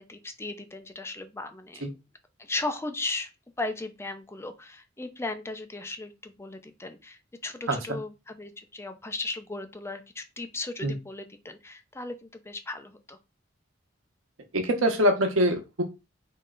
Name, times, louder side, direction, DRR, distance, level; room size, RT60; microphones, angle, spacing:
voice 1, 0.0-1.9 2.4-3.3 3.6-13.2, left 2 dB, 15° left, 8 dB, 0.5 m, -36 dB
voice 2, 7.7-8.0 10.8-10.9 14.5-15.8, equal, 85° right, 4 dB, 1.1 m, -24 dB
3.7 x 3.2 x 3.8 m, 0.26 s
head